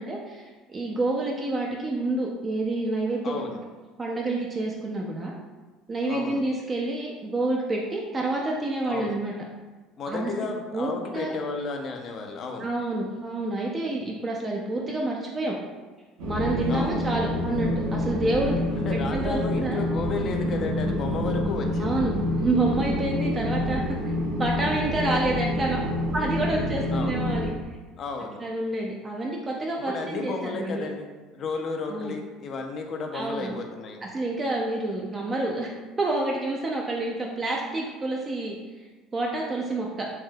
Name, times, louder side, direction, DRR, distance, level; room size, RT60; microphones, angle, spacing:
voice 1, 0.0-3.4 4.0-5.4 5.9-9.3 10.1-10.5 10.7-11.3 12.6-15.6 16.3-19.8 21.8-24.1 24.4-25.8 26.1-27.5 28.4-30.9 31.9-32.2 33.1-33.6 34.0-35.7 36.0-38.5 39.1-40.1, right 2 dB, 25° right, -1 dB, 0.3 m, -28 dB
voice 2, 3.2-3.6 6.1-6.5 8.8-9.2 10.0-12.7 16.7-17.0 18.8-22.0 25.1-25.2 26.9-27.2 28.0-28.4 29.8-34.0, left 4 dB, 45° left, 3 dB, 0.4 m, -33 dB
sound 1, 16.2-27.5, left 1 dB, 80° right, 0.7 m, -27 dB
3.3 x 2.6 x 2.2 m, 1.3 s
supercardioid pair, 105°, 0 cm